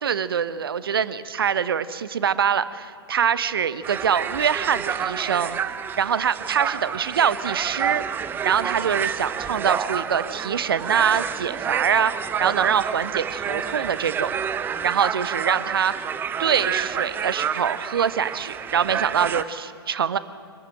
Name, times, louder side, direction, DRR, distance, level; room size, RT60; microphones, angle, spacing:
voice 1, 0.0-5.6 6.0-8.0 8.4-12.1 12.4-14.3 14.8-15.9 16.4-20.2, right 7 dB, 60° right, 15 dB, 1.0 m, -24 dB
sound 1, 3.8-19.4, right 7 dB, 15° right, 0.7 m, -29 dB
25.5 x 14.5 x 8.7 m, 2.4 s
figure-of-eight pair, 110°, 13 cm